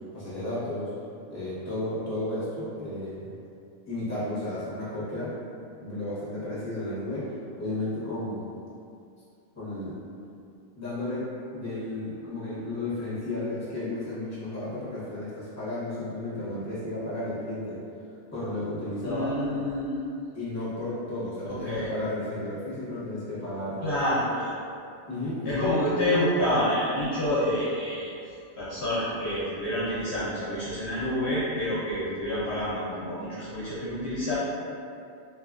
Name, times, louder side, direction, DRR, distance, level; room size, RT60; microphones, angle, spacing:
voice 1, 0.1-0.9 1.3-3.3 3.9-5.3 5.8-7.3 7.6-8.5 9.6-9.9 10.8-11.2 11.5-17.8 18.3-19.3 20.3-23.8 25.1-25.6, left 1 dB, 15° left, -11 dB, 0.6 m, -33 dB
voice 2, 19.0-20.0 21.5-21.9 23.8-24.5 25.4-28.1 28.6-34.3, left 1 dB, 60° left, -10 dB, 0.8 m, -28 dB
2.8 x 2.3 x 2.4 m, 2.5 s
omnidirectional pair, 1.4 m